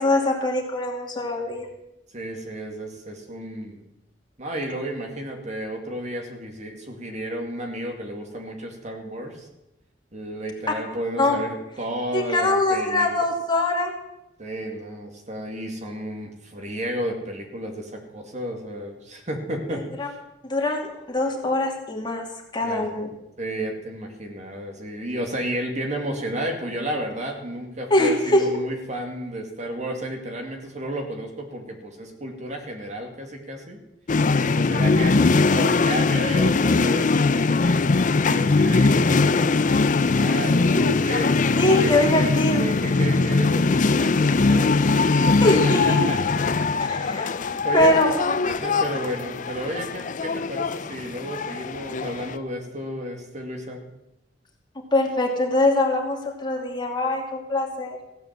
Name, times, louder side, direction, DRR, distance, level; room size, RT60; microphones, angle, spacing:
voice 1, 0.0-1.7 11.2-11.4 12.1-13.9 20.0-20.1 20.4-22.3 22.5-23.1 27.9-28.4 35.6-35.7 40.8-40.9 41.6-42.6 45.4-46.0 46.8-47.3 47.7-48.4 54.9-58.0, left 1 dB, 25° left, 0 dB, 2.5 m, -22 dB
voice 2, 2.1-3.8 4.4-9.5 10.1-13.1 14.4-20.2 22.6-22.9 23.4-33.8 34.4-37.8 38.3-40.8 41.0-41.5 41.8-41.9 42.6-44.9 45.3-46.4 46.9-47.2 47.5-48.0 48.4-53.8, right 1 dB, 40° right, 2 dB, 2.3 m, -32 dB
sound 1, 34.1-52.4, left 3 dB, 45° left, 0.5 m, -21 dB
16.0 x 8.6 x 7.5 m, 0.90 s
head